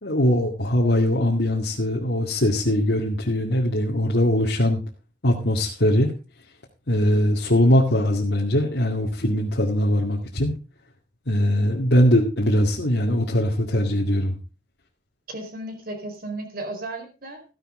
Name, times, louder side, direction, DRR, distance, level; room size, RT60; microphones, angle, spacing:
voice 1, 0.0-4.8 5.2-6.1 6.9-10.5 11.3-14.4, left 1 dB, 70° left, -2 dB, 2.2 m, -21 dB
voice 2, 15.3-17.4, right 2 dB, 55° right, 4 dB, 4.6 m, -34 dB
15.0 x 11.0 x 3.7 m, 0.31 s
head